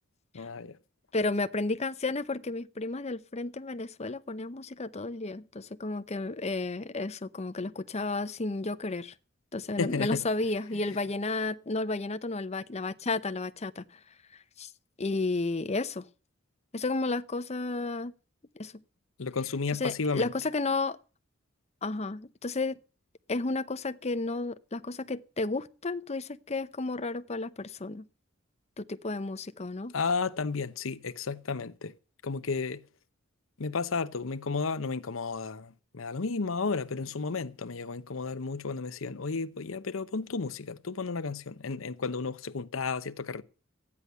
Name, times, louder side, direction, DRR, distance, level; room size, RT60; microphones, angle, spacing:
voice 1, 0.3-0.8 9.8-10.2 19.2-20.3 29.9-31.9 32.2-32.8 33.6-43.4, left 4 dB, 80° left, 0.8 m, -33 dB
voice 2, 1.1-9.1 9.5-14.0 14.6-14.7 15.0-16.0 16.7-18.1 18.6-18.7 19.8-21.0 21.8-22.8 23.3-28.1 28.8-29.9, left 3 dB, 30° left, 0.8 m, -32 dB
14.5 x 9.8 x 6.8 m
head